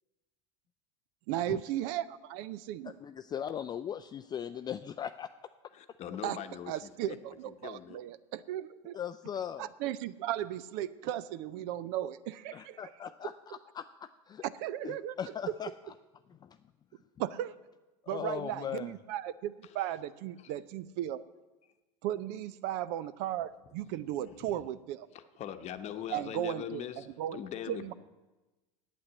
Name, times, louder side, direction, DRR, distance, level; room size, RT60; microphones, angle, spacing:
voice 1, 1.3-3.0 6.2-6.4 6.7-9.0 9.6-13.1 14.4-15.1 17.2-17.5 18.1-21.2 22.0-25.1 26.1-27.4 27.7-27.9, right 12 dB, 65° right, 17 dB, 0.6 m, -36 dB
voice 2, 2.8-5.3 8.9-9.7 12.5-14.4 14.8-15.7 16.4-16.6 18.0-18.9, left 9 dB, 25° left, 10 dB, 0.3 m, -39 dB
voice 3, 5.7-7.2 7.6-8.0 24.4-24.6 25.4-27.1 27.3-27.9, left 10 dB, 40° left, 8 dB, 0.9 m, -41 dB
8.7 x 8.6 x 7.9 m, 1.1 s
supercardioid pair, 115°, 17 cm